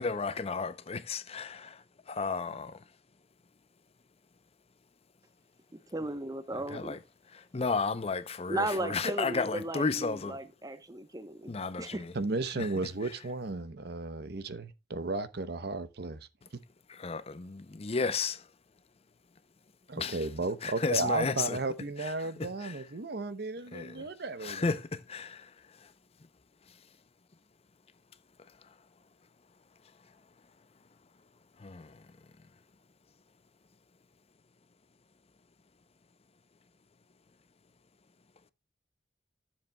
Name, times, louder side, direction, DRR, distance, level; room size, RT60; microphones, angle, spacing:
voice 1, 0.0-1.7 2.1-2.7 6.7-7.0 7.5-10.4 11.5-12.1 17.0-18.4 20.0-20.2 20.6-21.6 22.4-22.5 23.7-23.9 24.4-25.4 31.6-31.9, left 4 dB, 35° left, 0.6 m, -32 dB
voice 2, 5.9-7.0 8.5-11.5 11.8-12.0, right 1 dB, 20° right, 0.9 m, -35 dB
voice 3, 12.1-16.2 19.9-24.8, right 3 dB, 65° right, 0.8 m, -34 dB
13.5 x 7.4 x 2.2 m
head